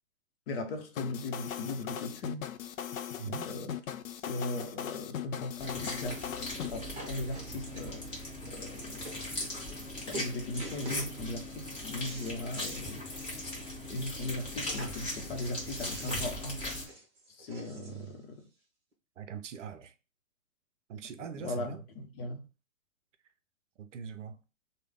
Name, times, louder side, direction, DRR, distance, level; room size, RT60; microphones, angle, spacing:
voice 1, 0.5-2.5 3.3-3.8 4.2-13.1 13.9-16.9 17.3-18.5 21.2-22.4, left 2 dB, 45° left, 0.9 m, -39 dB
sound 1, 1.0-6.7, left 9 dB, 75° left, 0.5 m, -39 dB
voice 2, 3.2-3.5 17.7-18.1 19.2-19.9 20.9-21.8 23.8-24.4, right 7 dB, 60° right, 0.6 m, -42 dB
sound 2, 5.6-16.8, left 1 dB, 15° left, 1.0 m, -39 dB
sound 3, 6.1-6.3 6.6-8.2 8.7-8.8 9.0-9.2 9.6-9.9 10.1-11.1 11.6-12.9 13.2-13.3 13.6-13.7 14.6-18.1 18.9-19.0, right 1 dB, 15° right, 1.0 m, -46 dB
3.4 x 2.2 x 3.5 m
hypercardioid pair, 130°, 41 cm